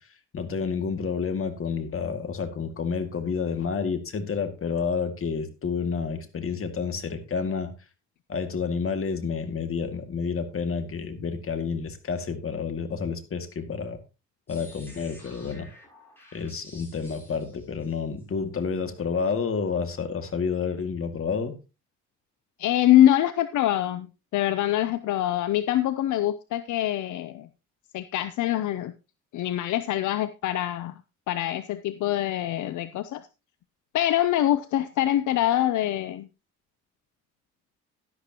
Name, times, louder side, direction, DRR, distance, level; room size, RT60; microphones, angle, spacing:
voice 1, 0.3-7.7 8.3-14.0 14.5-15.7 16.3-21.6, left 5 dB, 45° left, 2.1 m, -29 dB
sound 1, 14.5-18.2, left 1 dB, 5° left, 6.8 m, -51 dB
voice 2, 22.6-24.1 24.3-27.5 27.9-28.9 29.3-30.9 31.3-33.2 33.9-36.3, left 13 dB, 75° left, 0.7 m, -24 dB
11.5 x 11.0 x 2.9 m
cardioid pair, 90°, 30 cm